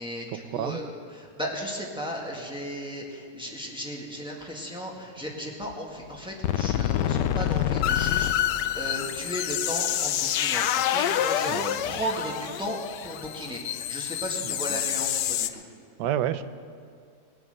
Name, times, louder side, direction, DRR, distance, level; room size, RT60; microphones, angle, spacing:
voice 1, 0.0-11.6 11.8-12.8 13.0-15.6, equal, 5° right, -2 dB, 1.7 m, -35 dB
sound 1, 5.7-5.8 6.2-6.3 6.4-15.5, left 11 dB, 90° left, 1.3 m, -27 dB
voice 2, 11.5-11.8 14.4-14.5 16.0-16.5, right 10 dB, 85° right, 12 dB, 1.3 m, -29 dB
20.0 x 7.8 x 6.6 m, 2.2 s
omnidirectional pair, 1.8 m